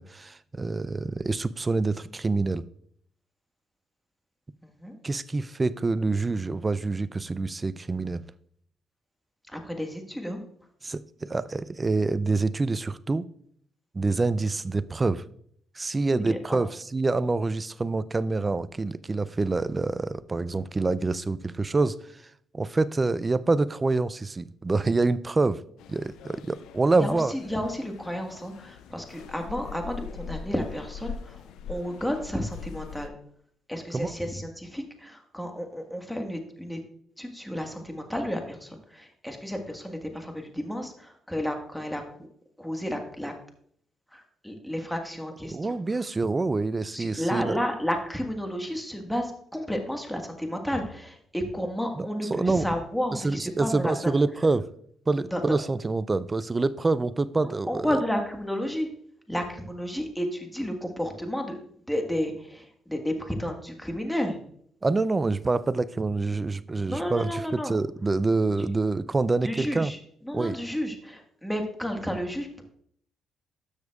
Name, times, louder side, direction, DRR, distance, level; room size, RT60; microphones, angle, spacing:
voice 1, 0.0-2.6 5.0-8.2 10.8-13.2 13.9-15.2 15.8-22.0 22.5-25.6 25.9-27.3 33.9-34.1 45.5-47.6 52.0-52.1 52.3-52.7 53.2-54.7 55.1-58.0 64.8-69.9 70.3-70.6, right 3 dB, 25° right, 0.4 m, -26 dB
voice 2, 4.6-5.0 9.5-10.4 16.1-16.6 26.9-33.1 33.7-36.8 37.2-42.3 42.6-43.3 44.1-46.1 46.9-54.1 55.3-55.6 57.7-58.9 59.3-61.6 61.9-64.4 66.9-67.7 69.4-70.0 70.2-72.6, equal, 5° left, 1.6 m, -32 dB
sound 1, 25.8-33.1, left 6 dB, 85° left, 0.4 m, -42 dB
12.5 x 6.9 x 2.4 m
cardioid pair, 90°, 0 cm